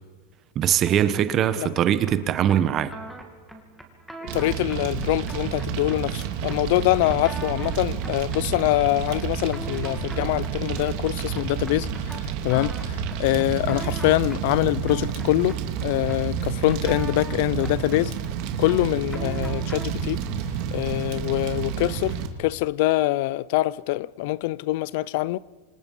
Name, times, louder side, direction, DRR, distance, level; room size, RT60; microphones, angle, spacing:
voice 1, 0.5-2.9, right 10 dB, 30° right, 1.1 m, -21 dB
sound 1, 0.8-20.0, right 1 dB, ahead, 2.9 m, -42 dB
voice 2, 4.3-11.9 12.4-15.5 15.8-18.1 18.6-20.2 20.7-25.4, left 18 dB, 60° left, 0.6 m, -24 dB
Fire, 4.3-22.3, right 8 dB, 50° right, 2.5 m, -30 dB
28.0 x 26.5 x 5.6 m
supercardioid pair, 150°, 0 cm